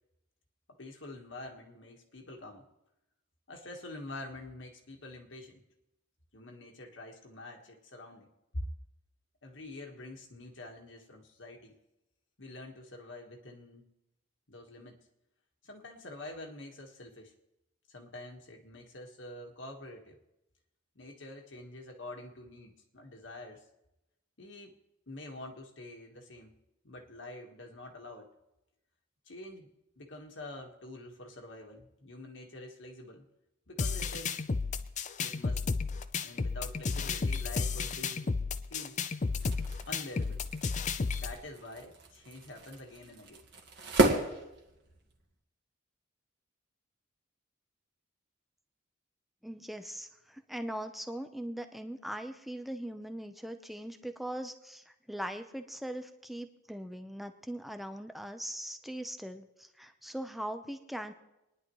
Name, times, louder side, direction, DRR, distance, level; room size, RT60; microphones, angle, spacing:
voice 1, 0.7-2.7 3.5-5.6 6.3-8.6 9.4-11.8 12.4-13.9 14.5-15.0 15.6-17.3 17.9-20.2 20.9-23.6 24.4-24.8 25.1-26.6 26.8-28.3 29.3-29.7 30.0-33.3 33.7-34.4 35.2-35.8 36.2-38.4 38.7-39.0 39.9-40.4 41.1-43.4, left 2 dB, 65° left, 1 dB, 1.5 m, -46 dB
sound 1, 33.8-41.3, left 4 dB, 35° left, 0.5 m, -33 dB
sound 2, 39.2-45.2, right 2 dB, 55° right, 1.7 m, -34 dB
voice 2, 49.4-61.1, right 1 dB, ahead, 7 dB, 0.7 m, -40 dB
27.0 x 10.5 x 3.1 m, 0.93 s
head